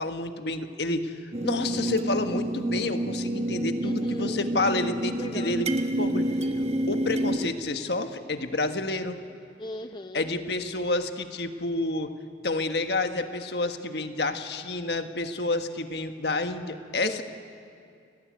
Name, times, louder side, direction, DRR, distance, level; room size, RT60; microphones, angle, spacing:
voice 1, 0.0-5.7 6.0-6.3 6.9-9.2 10.1-12.1 12.4-17.1, left 2 dB, 65° left, 7 dB, 1.5 m, -29 dB
sound 1, 1.3-7.5, right 1 dB, 35° right, 1.1 m, -28 dB
voice 2, 3.8-4.4 5.2-5.6 9.6-10.3 17.0-17.2, left 1 dB, 25° left, 7 dB, 0.7 m, -37 dB
29.5 x 18.0 x 9.5 m, 2.4 s
head